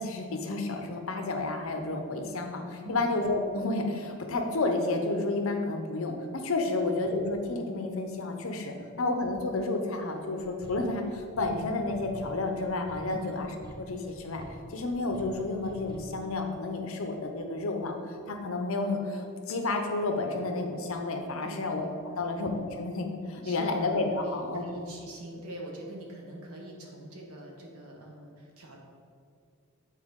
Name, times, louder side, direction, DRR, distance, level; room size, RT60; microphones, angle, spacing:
voice 1, 0.0-13.5 13.8-14.4 14.7-21.9 22.2-24.6, left 2 dB, 65° left, 4 dB, 0.7 m, -31 dB
sound 1, 10.4-16.3, right 1 dB, 20° right, 0.6 m, -47 dB
voice 2, 21.4-22.3 23.4-23.9 24.2-28.8, right 1 dB, 85° right, 0 dB, 1.2 m, -44 dB
8.3 x 4.2 x 3.7 m, 2.3 s
head